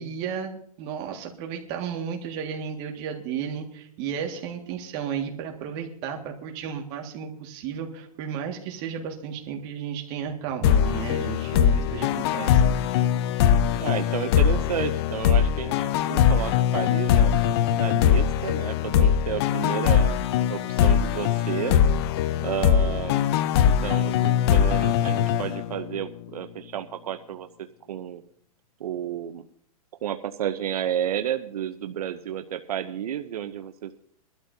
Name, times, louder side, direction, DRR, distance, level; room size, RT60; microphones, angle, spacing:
voice 1, 0.0-12.6, right 7 dB, 35° right, 3 dB, 1.9 m, -33 dB
sound 1, 10.6-26.1, left 9 dB, 45° left, 0.7 m, -22 dB
voice 2, 13.7-17.4 17.8-20.2 20.5-21.8 22.4-23.2 23.6-27.5 27.9-28.2 28.8-29.4 30.0-34.0, right 10 dB, 85° right, 8 dB, 0.7 m, -31 dB
22.0 x 12.5 x 2.7 m, 0.66 s
hypercardioid pair, 150°, 19 cm